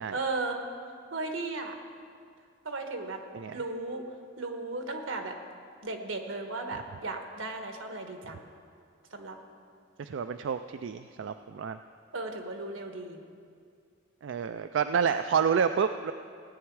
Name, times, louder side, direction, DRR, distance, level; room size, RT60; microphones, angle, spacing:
voice 1, 0.1-1.8 2.6-3.2 3.5-4.0 4.4-5.4 5.8-8.5 9.1-9.4 12.1-13.2, right 3 dB, 90° right, 4 dB, 1.4 m, -35 dB
voice 2, 10.0-11.8 14.2-16.1, right 6 dB, 70° right, 9 dB, 0.3 m, -29 dB
17.5 x 9.6 x 4.7 m, 2.2 s
head